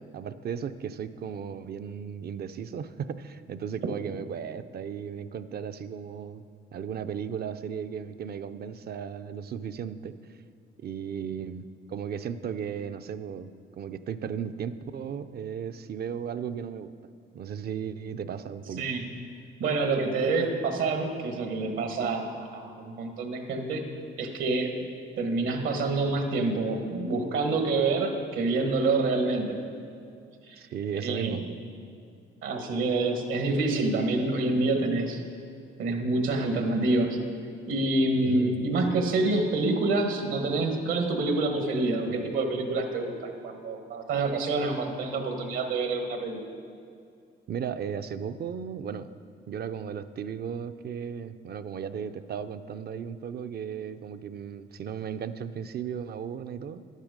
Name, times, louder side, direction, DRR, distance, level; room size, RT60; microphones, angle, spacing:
voice 1, 0.1-6.4 6.7-10.1 10.8-13.5 13.8-16.9 17.3-18.8 30.6-31.5 38.2-38.9 47.5-49.1 49.5-56.8, right 7 dB, 55° right, 11 dB, 0.5 m, -35 dB
voice 2, 19.6-23.8 24.2-24.8 25.2-29.6 30.4-30.6 30.9-31.5 32.4-35.2 35.8-37.2 37.7-46.4, right 3 dB, 80° right, 4 dB, 1.4 m, -27 dB
11.0 x 9.1 x 5.1 m, 2.4 s
cardioid pair, 90°, 20 cm